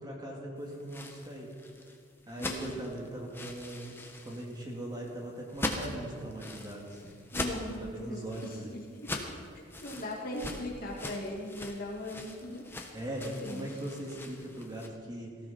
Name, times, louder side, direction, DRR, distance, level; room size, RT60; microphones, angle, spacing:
voice 1, 0.0-1.5 2.3-3.9 4.2-7.2 7.6-8.8 12.9-15.4, right 1 dB, 20° right, -1 dB, 2.3 m, -40 dB
sound 1, 0.7-14.9, left 2 dB, 10° left, 1.1 m, -41 dB
voice 2, 2.4-2.7 7.3-9.4 9.8-12.6 13.4-13.7, left 1 dB, 45° left, -1 dB, 2.3 m, -39 dB
18.0 x 14.5 x 4.4 m, 2.2 s
head